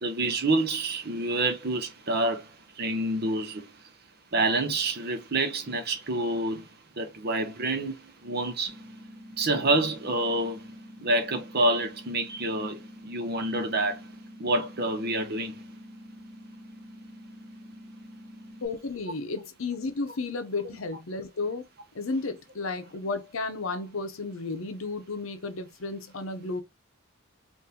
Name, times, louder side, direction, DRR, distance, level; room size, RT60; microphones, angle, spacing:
voice 1, 0.0-3.8 4.3-6.7 7.0-8.8 9.4-10.7 11.0-14.1 14.4-15.6, right 2 dB, 50° right, 0.8 m, -28 dB
sound 1, 8.7-18.7, equal, 30° right, 1.1 m, -47 dB
voice 2, 18.6-21.7 21.9-26.6, left 3 dB, 75° left, 0.7 m, -33 dB
3.7 x 2.6 x 2.7 m
head